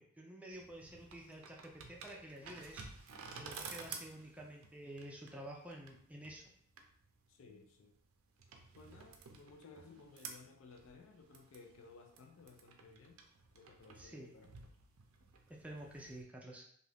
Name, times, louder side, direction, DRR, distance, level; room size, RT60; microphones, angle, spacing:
voice 1, 0.2-2.9 3.4-6.5 14.0-14.3 15.5-16.7, right 1 dB, 5° right, -1 dB, 0.4 m, -50 dB
sound 1, 0.5-16.2, right 5 dB, 85° right, 0.5 m, -54 dB
voice 2, 7.3-7.9 8.7-13.2 13.5-14.5, left 4 dB, 70° left, 3 dB, 0.4 m, -58 dB
2.6 x 2.4 x 3.3 m, 0.64 s
head